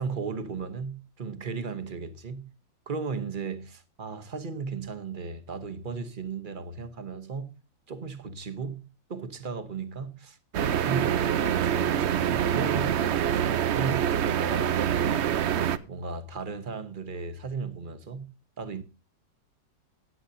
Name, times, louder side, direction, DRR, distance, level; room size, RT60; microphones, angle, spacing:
voice 1, 0.0-2.5 2.9-7.6 7.9-15.3 15.9-18.8, right 5 dB, 35° right, 0.9 m, -36 dB
sound 1, 10.5-15.8, right 9 dB, 75° right, 0.6 m, -25 dB
17.0 x 9.5 x 2.7 m
omnidirectional pair, 1.9 m